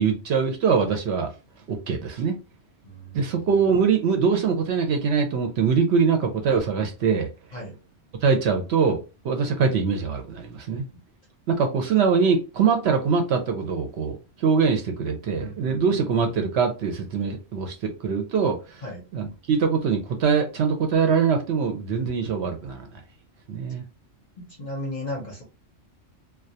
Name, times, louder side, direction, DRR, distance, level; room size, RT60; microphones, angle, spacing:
voice 1, 0.0-1.3 1.7-2.4 3.1-7.3 8.2-9.0 9.2-10.8 11.5-18.8 19.1-22.9 23.5-23.8, right 5 dB, 65° right, 0.8 m, -23 dB
voice 2, 2.8-3.5 7.5-7.8 10.7-11.0 15.4-16.2 18.8-19.1 23.7-23.8 24.4-25.4, left 1 dB, 45° left, 0.6 m, -36 dB
2.2 x 2.2 x 2.6 m
omnidirectional pair, 1.3 m